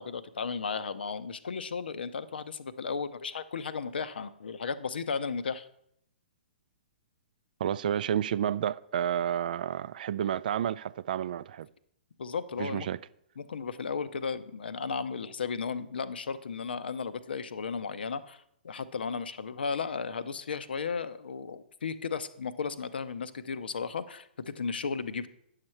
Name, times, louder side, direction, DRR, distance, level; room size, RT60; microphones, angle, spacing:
voice 1, 0.0-5.7 12.2-12.9 13.4-25.3, left 5 dB, 70° left, 0.6 m, -35 dB
voice 2, 7.6-11.7 12.6-13.0, right 10 dB, 55° right, 0.3 m, -30 dB
9.5 x 6.6 x 4.4 m
figure-of-eight pair, 120°, 6 cm